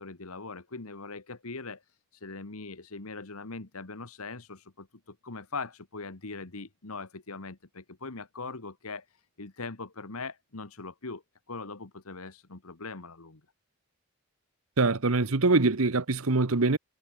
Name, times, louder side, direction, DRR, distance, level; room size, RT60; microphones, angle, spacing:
voice 1, 0.0-1.8 2.1-11.2 11.5-13.4, left 3 dB, 80° left, 1.7 m, -41 dB
voice 2, 14.8-16.8, right 3 dB, 75° right, 1.1 m, -24 dB
head